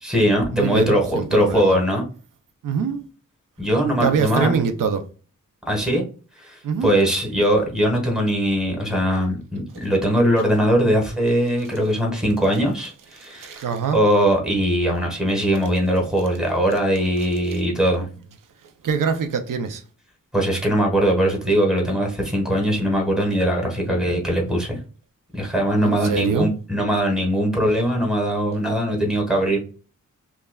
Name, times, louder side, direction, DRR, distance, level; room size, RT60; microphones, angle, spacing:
voice 1, 0.0-2.0 3.6-4.5 5.7-6.0 6.4-13.6 13.9-18.1 20.3-24.8 25.3-29.6, equal, ahead, 1.3 m, -21 dB
voice 2, 0.5-1.8 2.6-3.0 4.0-5.0 6.6-6.9 13.4-14.0 17.5-17.6 18.8-19.8 25.8-26.5, right 6 dB, 90° right, 0.6 m, -24 dB
5.3 x 2.4 x 2.2 m
wide cardioid pair, 125°, 32 cm